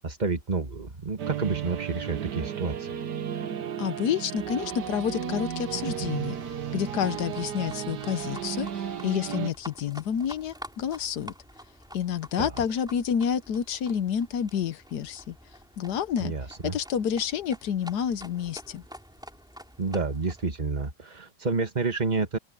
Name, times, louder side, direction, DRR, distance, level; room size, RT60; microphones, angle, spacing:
voice 1, 0.0-3.0 12.4-12.5 16.2-16.8 19.8-22.4, right 4 dB, 25° right, 1.7 m, -29 dB
sound 1, 1.2-9.5, right 9 dB, 70° right, 1.7 m, -34 dB
voice 2, 3.8-6.4 6.7-11.3 11.9-15.3 15.8-16.3 16.7-18.8, left 8 dB, 70° left, 1.4 m, -29 dB
Livestock farm animals working animals, 4.4-20.5, equal, ahead, 4.0 m, -48 dB
open air
omnidirectional pair, 1.9 m